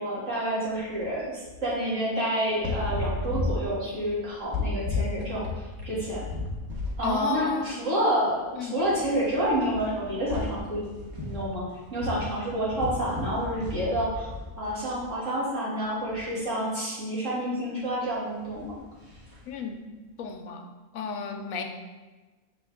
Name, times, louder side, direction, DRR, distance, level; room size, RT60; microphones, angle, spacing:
voice 1, 0.0-6.2 7.0-10.8 11.2-11.6 11.9-14.3 14.6-18.7, right 1 dB, 65° right, -8 dB, 2.5 m, -29 dB
sound 1, 0.7-1.1 1.5-1.6 2.5-7.0 7.4-7.6 8.4-8.5 8.7-15.1 15.8-16.2 18.4-19.5, left 3 dB, 15° right, 1.3 m, -34 dB
voice 2, 7.0-7.7 8.6-8.8 19.5-19.8 20.2-20.7 20.9-21.6, left 6 dB, 85° left, 5 dB, 1.1 m, -32 dB
6.9 x 4.6 x 3.5 m, 1.2 s
omnidirectional pair, 1.4 m